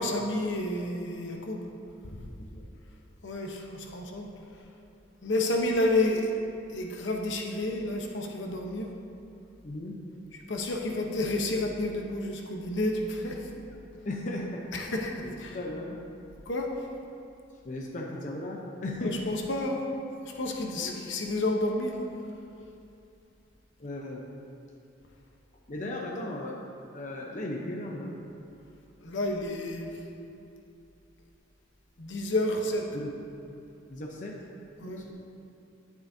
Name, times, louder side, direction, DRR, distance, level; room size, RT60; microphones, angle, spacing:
voice 1, 0.0-1.6 2.0-2.2 3.2-4.3 5.2-6.3 6.7-8.9 10.5-13.5 14.7-15.1 15.4-15.6 16.5-16.7 19.0-19.8 20.3-22.0 29.0-29.9 32.0-32.9 34.8-35.0, left 1 dB, 75° left, 1 dB, 0.9 m, -30 dB
voice 2, 9.6-10.0 13.5-13.7 14.0-14.9 15.2-16.0 17.6-19.2 20.7-21.1 23.8-24.3 25.7-26.6 26.9-28.2 32.9-33.1 33.9-34.4 35.0-35.1, left 1 dB, 40° left, -1 dB, 0.7 m, -36 dB
9.7 x 9.3 x 2.7 m, 2.7 s
head